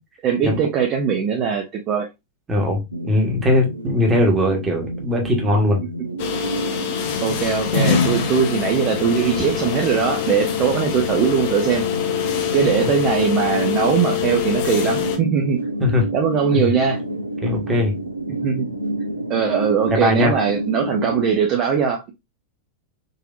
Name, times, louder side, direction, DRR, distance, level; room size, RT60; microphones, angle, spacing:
voice 1, 0.2-2.1 7.2-11.8 12.5-15.6 16.1-17.0 18.3-18.7 19.3-22.1, right 7 dB, 35° right, 0.6 m, -20 dB
voice 2, 2.5-5.8 12.8-12.9 15.8-16.1 16.5-16.7 17.4-18.0 19.9-20.3, left 1 dB, 15° right, 1.2 m, -20 dB
sound 1, 2.9-21.2, right 1 dB, 85° right, 0.6 m, -30 dB
sound 2, 6.2-15.2, left 8 dB, 50° left, 0.7 m, -24 dB
3.9 x 2.8 x 2.5 m
figure-of-eight pair, 90°, 0 cm